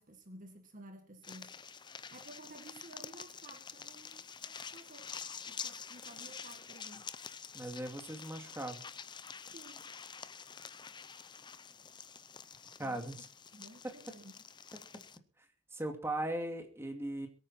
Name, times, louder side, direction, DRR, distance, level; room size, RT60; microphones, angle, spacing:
voice 1, 0.0-1.5 2.1-5.1 5.5-7.1 9.5-9.9 12.8-13.3 13.5-14.5, right 1 dB, 40° right, 1.8 m, -54 dB
sound 1, 1.2-15.2, left 6 dB, 25° left, 0.6 m, -48 dB
voice 2, 7.5-8.8 12.8-13.2 13.8-13.9 15.7-17.3, right 1 dB, 15° right, 2.5 m, -38 dB
22.5 x 9.0 x 4.4 m
head